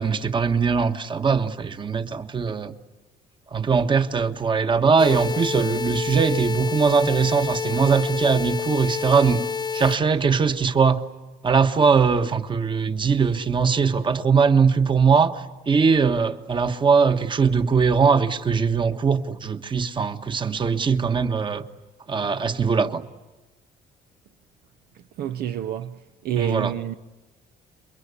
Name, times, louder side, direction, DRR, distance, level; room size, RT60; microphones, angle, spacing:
voice 1, 0.0-2.7 3.5-9.5 9.7-11.1 11.4-21.6 22.1-23.0 26.4-26.7, right 5 dB, 30° right, 1.5 m, -21 dB
sound 1, 5.0-10.0, left 6 dB, 25° left, 1.3 m, -29 dB
voice 2, 25.2-26.0 26.2-26.9, right 10 dB, 65° right, 0.9 m, -28 dB
29.5 x 23.0 x 8.3 m
cardioid pair, 110°, 17 cm